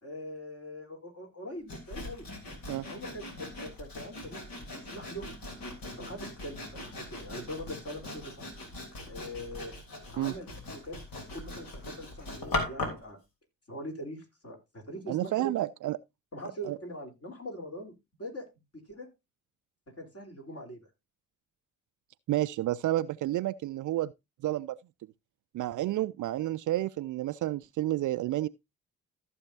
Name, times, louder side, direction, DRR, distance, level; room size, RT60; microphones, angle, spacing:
voice 1, 0.0-2.3 2.8-5.3 5.9-8.5 9.0-9.8 10.1-11.0 11.3-13.2 13.7-15.5 16.3-18.5 18.7-19.1 19.9-20.9, equal, 35° left, 3.6 m, -42 dB
Sawing, 1.7-13.1, left 2 dB, 60° left, 3.3 m, -40 dB
voice 2, 15.1-16.0 16.6-16.8 22.3-24.1 24.4-24.8 25.5-28.5, right 15 dB, 50° right, 0.5 m, -30 dB
14.5 x 7.1 x 2.7 m
hypercardioid pair, 40°, 40 cm